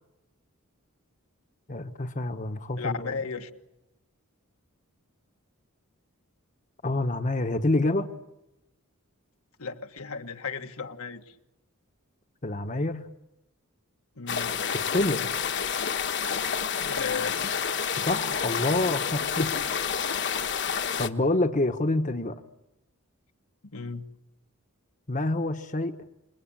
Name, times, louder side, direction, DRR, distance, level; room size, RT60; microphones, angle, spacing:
voice 1, 1.7-3.2 6.8-8.1 12.4-13.1 14.7-15.3 18.0-19.6 21.0-22.4 25.1-26.0, left 2 dB, 35° left, 7 dB, 1.2 m, -27 dB
voice 2, 2.8-3.5 9.6-11.2 14.2-14.5 16.8-17.6 23.7-24.0, left 5 dB, 85° left, 5 dB, 1.8 m, -35 dB
sound 1, 14.3-21.1, left 7 dB, 55° left, 1.4 m, -29 dB
28.5 x 22.0 x 8.9 m, 0.92 s
head